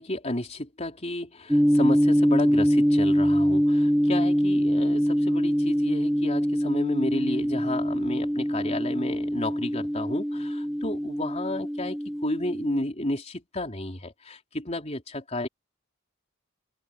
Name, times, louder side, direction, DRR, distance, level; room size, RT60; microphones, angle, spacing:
voice 1, 0.0-15.5, left 1 dB, 30° left, 4.2 m, -32 dB
sound 1, 1.5-12.8, equal, ahead, 1.7 m, -24 dB
open air
head